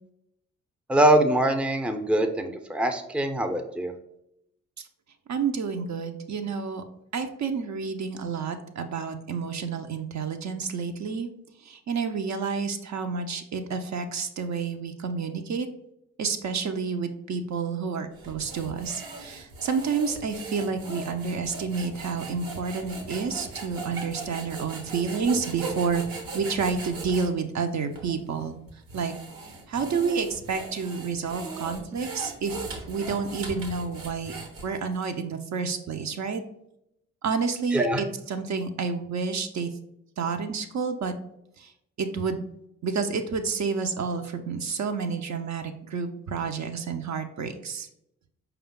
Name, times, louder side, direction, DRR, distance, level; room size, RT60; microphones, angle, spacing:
voice 1, 0.9-3.9 37.7-38.0, right 1 dB, 5° right, 7 dB, 0.5 m, -23 dB
voice 2, 5.3-6.8 7.1-11.3 11.6-15.7 16.2-26.0 26.3-28.6 28.9-29.1 29.7-34.4 34.6-36.4 37.2-39.7 40.2-41.1 41.6-41.7 42.0-42.5 42.8-47.9, right 5 dB, 50° right, 6 dB, 0.6 m, -29 dB
sound 1, 18.2-27.3 27.9-28.0 28.7-34.9, right 3 dB, 70° right, 1.0 m, -39 dB
4.9 x 2.3 x 3.6 m, 0.80 s
hypercardioid pair, 40°, 36 cm